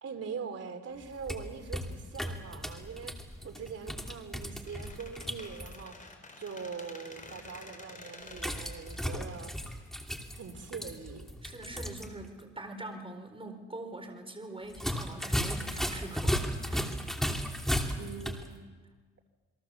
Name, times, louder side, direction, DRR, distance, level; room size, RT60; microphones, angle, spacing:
voice 1, 0.0-3.2 3.4-6.1 6.4-9.5 10.3-11.2 18.0-18.5, right 5 dB, 55° right, 6 dB, 3.1 m, -42 dB
sound 1, 1.0-5.8 8.3-12.1 12.4-12.5 14.7-18.5, equal, ahead, 2.9 m, -35 dB
Squeak, 4.7-10.4, left 3 dB, 25° left, 4.5 m, -50 dB
voice 2, 11.4-16.9, right 2 dB, 20° right, 5 dB, 4.6 m, -43 dB
28.5 x 22.0 x 7.1 m, 1.4 s
cardioid pair, 100°, 29 cm